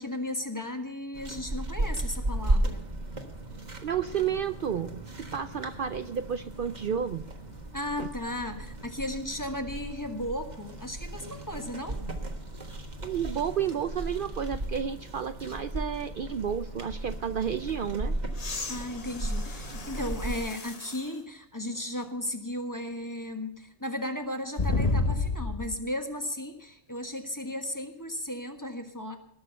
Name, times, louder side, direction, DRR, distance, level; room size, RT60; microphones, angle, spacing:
voice 1, 0.0-2.8 7.7-12.0 18.7-29.2, left 1 dB, 15° left, 5 dB, 1.3 m, -35 dB
sound 1, 1.1-20.4, right 1 dB, 40° right, 1.5 m, -35 dB
voice 2, 3.8-7.2 8.0-8.1 13.0-18.1, right 8 dB, 55° right, 10 dB, 0.7 m, -31 dB
sound 2, 18.3-21.1 21.8-21.9 24.6-25.8 27.6-27.7, left 3 dB, 35° left, 1.0 m, -31 dB
19.0 x 6.4 x 6.8 m, 0.81 s
omnidirectional pair, 1.2 m